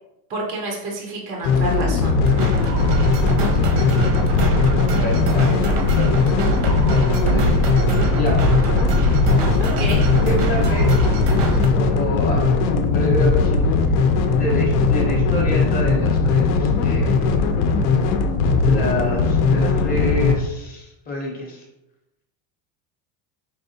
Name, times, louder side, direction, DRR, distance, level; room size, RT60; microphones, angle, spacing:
voice 1, 0.3-2.2 9.6-10.1, right 2 dB, 20° right, -1 dB, 0.3 m, -29 dB
sound 1, 1.4-20.4, left 4 dB, 85° left, 0.7 m, -19 dB
sound 2, 2.2-11.7, right 2 dB, 85° right, 0.9 m, -23 dB
voice 2, 3.7-6.2 6.9-8.4 10.2-10.9 11.7-17.3 18.6-21.6, left 1 dB, 20° left, -2 dB, 0.6 m, -28 dB
4.7 x 3.4 x 2.7 m, 0.91 s
cardioid pair, 175°, 47 cm